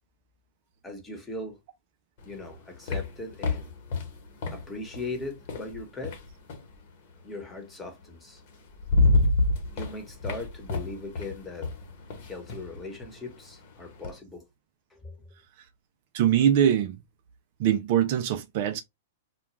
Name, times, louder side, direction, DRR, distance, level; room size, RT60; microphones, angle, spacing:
voice 1, 0.8-1.6 2.2-3.7 4.5-6.2 7.2-8.4 9.7-11.7 12.2-14.4 14.9-15.2, left 2 dB, 10° left, 1.1 m, -39 dB
sound 1, 2.2-6.8 8.0-8.1 8.5-14.2, left 2 dB, 55° left, 1.0 m, -29 dB
voice 2, 16.1-17.0 17.6-18.8, right 10 dB, 55° right, 0.4 m, -22 dB
2.3 x 2.2 x 3.0 m
hypercardioid pair, 120°, 0 cm